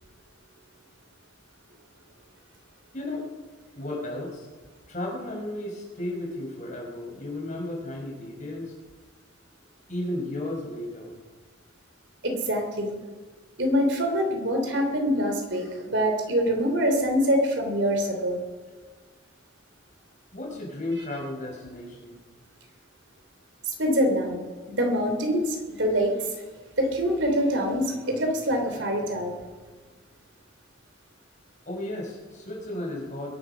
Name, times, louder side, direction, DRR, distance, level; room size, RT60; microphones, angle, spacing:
voice 1, 2.9-3.3 3.8-4.5 4.9-8.8 9.9-11.2 20.3-22.2 31.7-33.3, left 1 dB, 40° left, -2 dB, 5.1 m, -34 dB
voice 2, 12.2-13.0 13.6-18.4 23.7-24.4 24.8-26.1 26.8-29.3, equal, 65° right, 4 dB, 3.1 m, -25 dB
22.0 x 11.5 x 5.6 m, 1.4 s
head